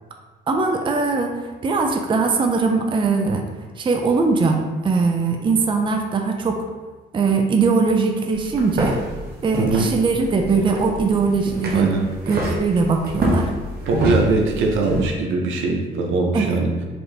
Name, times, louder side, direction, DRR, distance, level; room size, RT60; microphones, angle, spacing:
voice 1, 0.5-3.5 3.8-6.6 7.1-9.0 9.4-11.9 12.3-13.5 16.3-16.5, right 4 dB, 25° right, 3 dB, 0.4 m, -20 dB
sound 1, 8.3-15.1, right 1 dB, 50° right, 1.0 m, -26 dB
voice 2, 9.6-9.9 11.7-12.0 13.9-16.7, right 3 dB, 80° right, 1 dB, 0.6 m, -21 dB
4.2 x 2.6 x 3.3 m, 1.3 s
cardioid pair, 90°, 20 cm